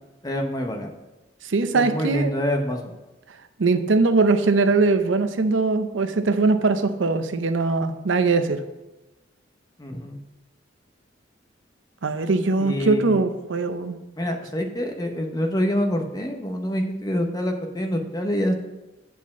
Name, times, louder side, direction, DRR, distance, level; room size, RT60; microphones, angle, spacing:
voice 1, 0.2-0.9 1.7-2.9 9.8-10.2 12.6-13.3 14.2-18.5, equal, 20° left, 4 dB, 0.8 m, -26 dB
voice 2, 1.4-2.3 3.6-8.6 12.0-14.0, right 3 dB, 70° right, 9 dB, 0.6 m, -21 dB
8.2 x 4.5 x 7.2 m, 1.1 s
head